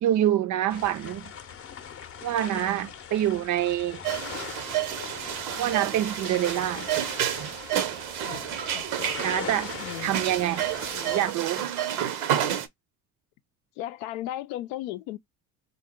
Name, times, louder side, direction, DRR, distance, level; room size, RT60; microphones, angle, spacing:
voice 1, 0.0-1.3 2.2-4.0 5.6-6.9 9.2-9.7 10.0-10.6 10.9-11.6, right 12 dB, 50° right, 0.5 m, -26 dB
sound 1, 0.7-11.3, left 8 dB, 35° left, 0.7 m, -41 dB
sound 2, 4.0-12.7, right 10 dB, 85° right, 0.8 m, -30 dB
voice 2, 8.2-9.2 9.8-10.2 13.8-15.2, left 14 dB, 85° left, 0.6 m, -36 dB
3.8 x 2.3 x 3.6 m
supercardioid pair, 90°, 39 cm